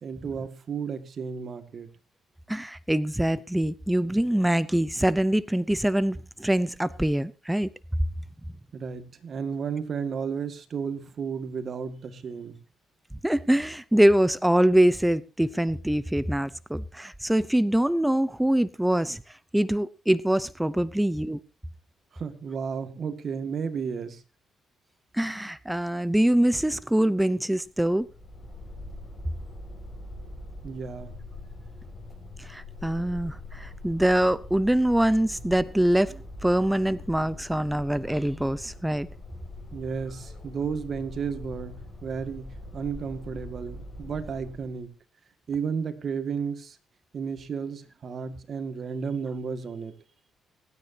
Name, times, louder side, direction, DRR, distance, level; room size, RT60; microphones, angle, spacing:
voice 1, 0.0-1.9 8.7-12.6 22.1-24.2 30.6-31.2 39.7-44.9 45.5-46.8 47.1-49.9, right 6 dB, 50° right, 1.9 m, -33 dB
voice 2, 2.5-7.7 13.2-19.2 19.5-21.4 25.1-28.1 32.4-39.1, right 1 dB, 5° right, 0.7 m, -24 dB
sound 1, 27.7-44.8, left 1 dB, 35° left, 5.4 m, -43 dB
26.0 x 9.7 x 2.8 m
cardioid pair, 90°, 0 cm